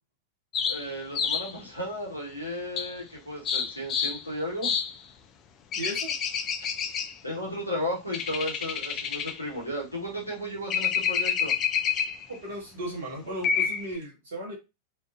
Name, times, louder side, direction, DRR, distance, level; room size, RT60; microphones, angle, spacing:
sound 1, 0.5-1.5 2.8-2.9 3.4-4.2 4.6-5.0 5.7-7.1 8.1-9.4 10.7-12.4 13.4-14.0, left 7 dB, 30° left, 0.3 m, -28 dB
voice 1, 0.7-4.7 7.2-11.5, equal, 90° right, -3 dB, 1.0 m, -34 dB
voice 2, 5.7-6.2 12.3-14.5, right 1 dB, 60° right, -2 dB, 0.8 m, -36 dB
2.4 x 2.2 x 2.4 m, 0.25 s
figure-of-eight pair, 90°, 0 cm